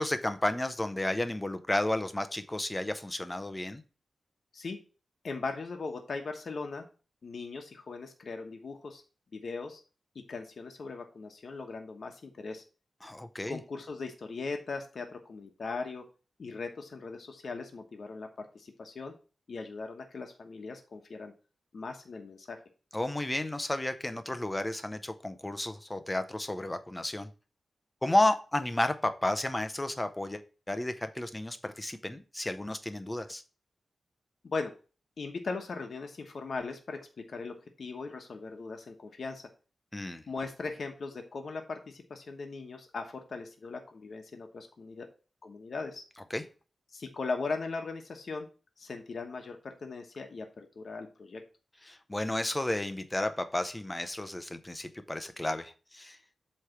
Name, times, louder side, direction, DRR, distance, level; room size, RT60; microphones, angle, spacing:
voice 1, 0.0-3.8 13.0-13.6 22.9-27.3 28.0-30.4 30.7-33.4 39.9-40.2 46.3-46.4 51.8-56.2, left 1 dB, 15° left, 10 dB, 0.7 m, -32 dB
voice 2, 5.2-6.8 7.2-9.0 9.3-9.8 10.1-12.6 13.5-16.0 16.4-19.1 19.5-21.3 21.7-22.6 34.4-34.7 35.2-37.0 37.3-39.4 40.3-45.1 45.4-46.0 46.9-48.5 48.8-51.4, left 4 dB, 65° left, 4 dB, 1.1 m, -39 dB
8.1 x 3.3 x 5.8 m, 0.35 s
wide cardioid pair, 100°, 0 cm